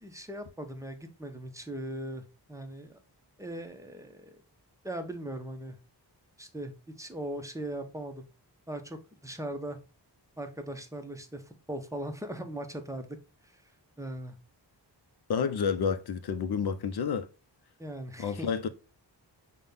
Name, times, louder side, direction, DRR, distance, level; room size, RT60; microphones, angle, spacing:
voice 1, 0.0-3.0 3.4-4.3 4.8-5.8 6.4-8.2 8.7-9.8 10.4-13.2 14.0-14.4 17.8-18.5, right 1 dB, 5° right, 0.6 m, -39 dB
voice 2, 15.3-17.3 18.2-18.7, left 6 dB, 60° left, 0.5 m, -29 dB
5.4 x 2.2 x 3.4 m
wide cardioid pair, 110°, 44 cm